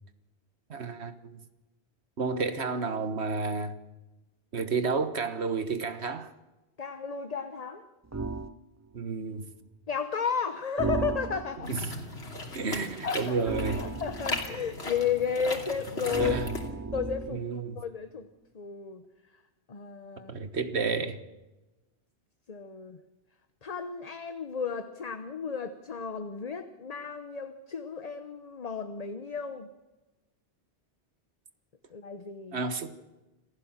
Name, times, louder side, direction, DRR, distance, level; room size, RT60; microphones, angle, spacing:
voice 1, 0.7-1.4 2.2-3.7 4.5-6.3 8.9-9.5 11.7-11.8 12.5-13.8 16.2-16.5 17.3-17.8 20.3-21.2 32.5-32.9, right 4 dB, 80° right, 1.7 m, -31 dB
voice 2, 6.8-7.8 9.9-11.7 13.0-13.4 13.8-16.4 16.9-18.3 18.5-19.0 19.7-20.3 22.5-23.0 23.6-29.7 31.9-32.6, left 6 dB, 40° left, 1.0 m, -33 dB
sound 1, 8.1-8.6 10.8-11.7 13.4-14.6 16.1-17.5, right 3 dB, 20° right, 0.5 m, -34 dB
sound 2, 11.6-16.7, left 2 dB, 75° left, 3.0 m, -37 dB
27.0 x 15.0 x 7.4 m
omnidirectional pair, 1.1 m